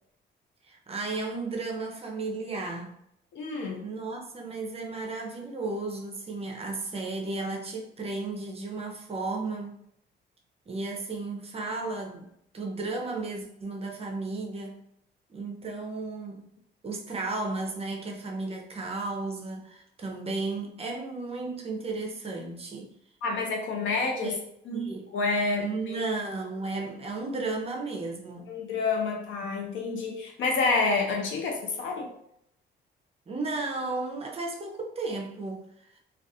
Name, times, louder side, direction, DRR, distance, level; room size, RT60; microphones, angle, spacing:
voice 1, 0.7-2.9 3.8-9.8 10.7-12.3 12.5-14.8 15.3-16.4 16.8-22.9 24.2-24.4 24.7-25.1 25.6-28.5 33.3-35.7, right 3 dB, 30° right, 0 dB, 0.6 m, -34 dB
voice 2, 3.3-3.9 23.2-24.3 24.7-26.0 28.5-32.1, left 3 dB, 75° left, 1 dB, 0.7 m, -29 dB
2.4 x 2.3 x 2.7 m, 0.74 s
cardioid pair, 90°, 20 cm